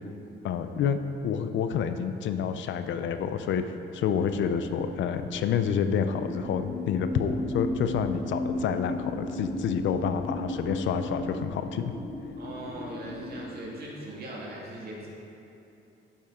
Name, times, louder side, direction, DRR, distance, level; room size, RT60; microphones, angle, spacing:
voice 1, 0.4-11.9, left 7 dB, 75° left, 9 dB, 0.5 m, -28 dB
sound 1, 4.1-13.5, left 1 dB, 30° left, 1.0 m, -35 dB
voice 2, 12.4-15.1, right 1 dB, 50° right, -3 dB, 2.1 m, -40 dB
9.8 x 7.3 x 3.7 m, 2.8 s
cardioid pair, 90°, 20 cm